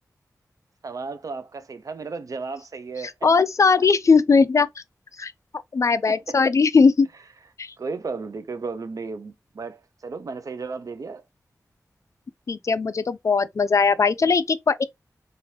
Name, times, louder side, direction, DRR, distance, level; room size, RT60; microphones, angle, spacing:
voice 1, 0.8-3.1 6.1-6.4 7.8-11.2, right 4 dB, 65° right, 0.5 m, -34 dB
voice 2, 3.2-4.8 5.2-5.3 5.7-7.1 7.6-7.7 12.5-14.8, left 4 dB, 55° left, 0.3 m, -19 dB
2.8 x 2.5 x 3.1 m
wide cardioid pair, 85°, 6 cm